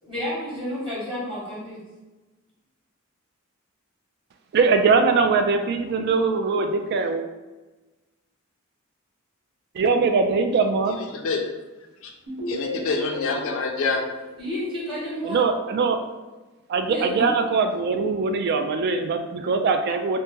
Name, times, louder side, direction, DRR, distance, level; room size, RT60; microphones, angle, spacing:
voice 1, 0.0-1.8 14.4-15.4 16.8-17.3, equal, 25° right, -9 dB, 1.3 m, -30 dB
voice 2, 4.5-7.2 9.7-11.0 15.2-16.0 16.7-20.2, right 4 dB, 50° right, 6 dB, 0.3 m, -22 dB
voice 3, 10.9-11.4 12.0-12.1 12.5-14.0, left 4 dB, 65° left, 3 dB, 0.4 m, -27 dB
sound 1, 12.3-15.2, left 1 dB, 80° right, 1.2 m, -34 dB
2.8 x 2.0 x 3.5 m, 1.2 s
head